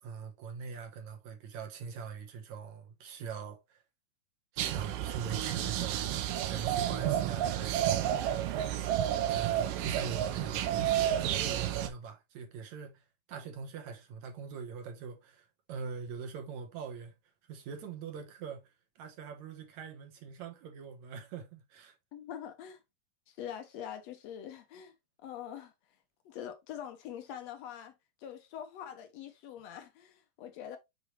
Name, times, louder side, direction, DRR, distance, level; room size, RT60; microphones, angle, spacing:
voice 1, 0.0-3.8 4.5-6.1 6.4-7.9 8.7-8.9 9.3-17.1 17.5-22.0, right 6 dB, 70° right, 2.3 m, -43 dB
sound 1, 4.6-11.9, right 11 dB, 90° right, 2.5 m, -31 dB
voice 2, 22.1-22.8 23.3-24.9 25.2-25.7 26.2-27.9 28.2-30.8, left 9 dB, 75° left, 1.6 m, -44 dB
6.8 x 5.0 x 3.0 m
omnidirectional pair, 3.8 m